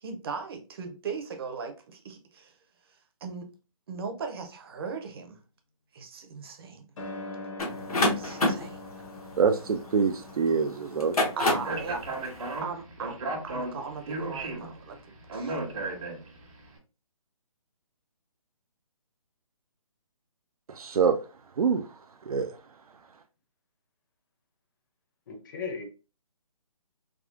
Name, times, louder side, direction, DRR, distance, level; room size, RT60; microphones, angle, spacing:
voice 1, 0.0-2.5 3.2-3.5 3.9-5.4 5.9-6.9 8.0-9.1 9.5-9.6 11.4-12.0 12.6-13.2 13.4-15.0 15.3-15.6, right 5 dB, 40° right, 0.6 m, -38 dB
sound 1, 7.0-11.8, left 2 dB, 60° left, 0.8 m, -43 dB
sound 2, 7.6-10.3 10.9-11.8, left 2 dB, 85° left, 1.0 m, -27 dB
voice 2, 9.4-11.2 20.7-21.2 21.6-21.8 22.3-22.5, right 6 dB, 85° right, 0.4 m, -25 dB
Speech, 11.5-16.5, right 2 dB, 65° right, 1.2 m, -35 dB
voice 3, 25.3-25.8, left 5 dB, 35° left, 0.6 m, -36 dB
3.6 x 2.3 x 2.4 m
hypercardioid pair, 150°, 18 cm